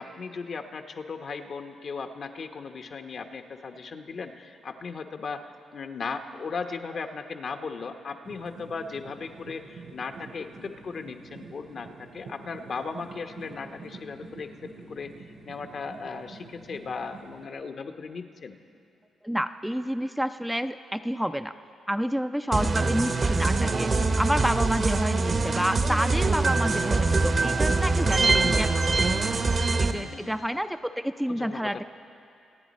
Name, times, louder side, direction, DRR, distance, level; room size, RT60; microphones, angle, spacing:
voice 1, 0.0-15.1 15.4-18.6 22.8-22.9 25.2-25.3 30.0-30.4 31.3-31.8, left 4 dB, 55° left, 6 dB, 0.9 m, -37 dB
sound 1, 8.2-17.4, right 3 dB, 80° right, 2.9 m, -47 dB
voice 2, 19.2-21.5 21.9-23.9 24.2-29.1 29.8-31.8, equal, 5° right, 9 dB, 0.4 m, -29 dB
sound 2, 22.5-29.9, right 3 dB, 45° right, 0.9 m, -24 dB
25.0 x 9.5 x 4.2 m, 2.6 s
supercardioid pair, 65°, 0 cm